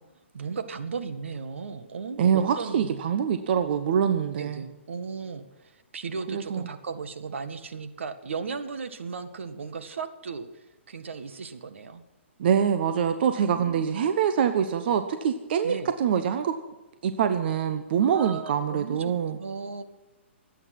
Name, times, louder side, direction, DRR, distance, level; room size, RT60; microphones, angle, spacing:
voice 1, 0.3-3.0 4.4-12.0 13.4-13.9 15.6-15.9 18.0-19.8, right 5 dB, 75° right, 9 dB, 1.7 m, -36 dB
voice 2, 2.2-4.6 6.3-6.7 12.4-16.5 17.0-19.4, right 8 dB, 55° right, 9 dB, 1.1 m, -25 dB
24.5 x 9.1 x 6.0 m, 1.1 s
hypercardioid pair, 140°, 7 cm